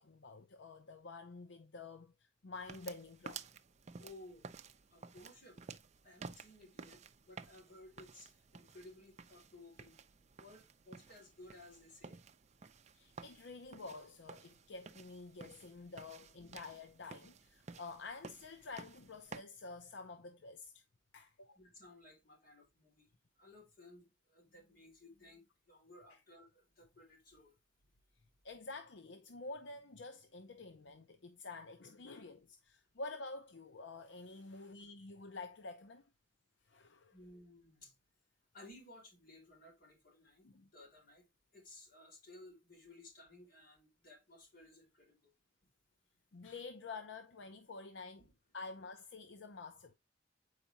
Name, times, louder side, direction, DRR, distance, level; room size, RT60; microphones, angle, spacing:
voice 1, 0.0-3.4 12.9-20.8 21.1-21.6 26.1-26.2 28.4-36.1 36.6-37.1 40.4-40.7 46.3-48.2 48.5-49.9, left 3 dB, 80° left, 0.7 m, -49 dB
sound 1, 2.5-19.4, right 5 dB, 40° right, 0.5 m, -54 dB
voice 2, 4.0-4.5 4.9-5.6 6.0-10.0 10.4-12.2 16.4-16.6 21.5-27.5 37.1-37.9 38.5-41.3 41.5-45.3, left 1 dB, 50° left, 4.5 m, -58 dB
8.1 x 5.0 x 2.8 m
head